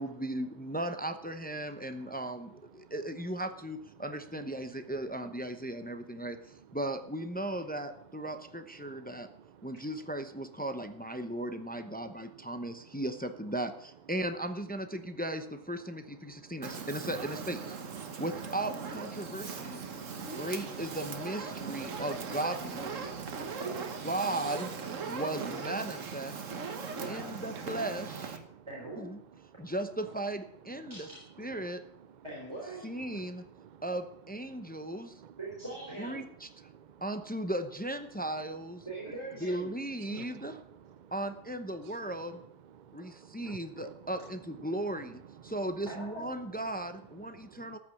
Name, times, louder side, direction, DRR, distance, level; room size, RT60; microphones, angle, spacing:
voice 1, 0.0-9.3 9.6-17.6 18.2-19.9 20.2-23.1 24.0-24.7 25.1-26.4 27.0-28.4 29.0-29.2 29.6-31.1 31.4-31.8 32.8-33.4 33.8-35.2 36.0-36.5 37.0-38.8 39.4-40.6 41.1-42.4 42.9-47.8, right 1 dB, 10° left, 0.6 m, -37 dB
voice 2, 8.8-9.3 9.6-9.7 16.4-16.5 18.0-18.2 19.8-20.4 23.0-23.6 25.1-25.2 26.7-26.9 28.5-28.6 29.6-29.7 31.6-31.7 33.1-33.3 33.6-33.8 34.5-34.9 35.2-35.4 36.7-37.0 40.0-40.6 41.0-41.1 42.8-43.9 47.4-47.8, right 8 dB, 50° right, 0.6 m, -53 dB
Fire, 16.6-28.4, right 5 dB, 85° right, 1.6 m, -39 dB
voice 3, 26.9-27.3 28.7-29.1 30.9-31.2 32.2-32.9 35.4-36.2 38.9-39.7 45.9-46.2, right 2 dB, 20° right, 3.7 m, -41 dB
14.0 x 6.1 x 9.3 m
omnidirectional pair, 1.3 m